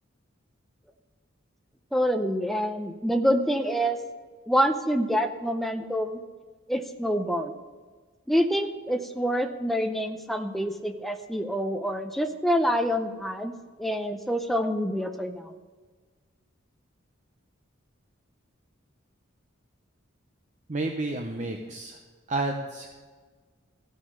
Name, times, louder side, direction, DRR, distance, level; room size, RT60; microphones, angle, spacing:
voice 1, 1.9-4.0 4.5-6.2 6.7-7.6 8.3-13.5 13.8-15.5, equal, ahead, 6 dB, 0.6 m, -26 dB
voice 2, 20.7-22.0 22.3-23.0, right 2 dB, 35° right, 4 dB, 0.7 m, -31 dB
15.0 x 6.3 x 6.6 m, 1.4 s
head